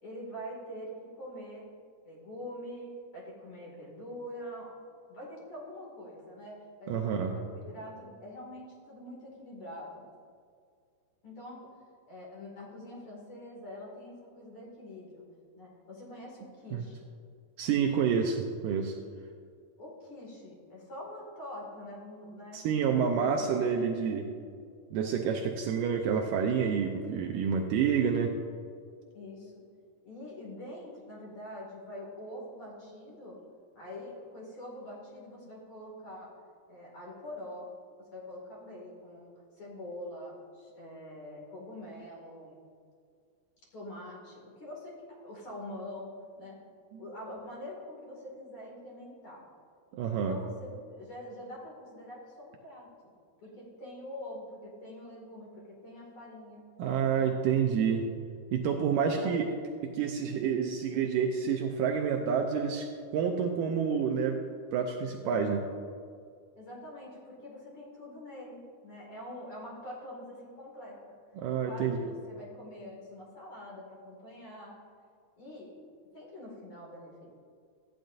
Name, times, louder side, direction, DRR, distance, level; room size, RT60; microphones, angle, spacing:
voice 1, 0.0-1.6 2.1-4.8 5.1-10.1 11.2-11.7 12.1-15.2 15.6-17.1 19.8-22.8 23.1-23.5 29.1-29.5 30.0-33.4 33.7-36.3 36.7-37.7 38.1-39.3 39.6-42.6 43.7-46.1 46.4-46.6 47.0-49.4 50.1-52.9 53.4-56.6 57.1-57.3 59.1-59.3 66.6-71.0 71.6-74.8 75.4-75.7 76.1-77.3, left 1 dB, 40° left, -4 dB, 2.8 m, -45 dB
voice 2, 6.9-7.3 16.7-16.8 17.6-19.0 22.5-24.3 24.9-28.3 49.9-50.4 56.8-58.1 58.5-59.5 59.8-62.9 63.1-64.4 64.7-65.6 71.4-72.1, right 7 dB, 90° right, 2 dB, 1.9 m, -28 dB
14.5 x 10.0 x 2.6 m, 2.2 s
omnidirectional pair, 4.4 m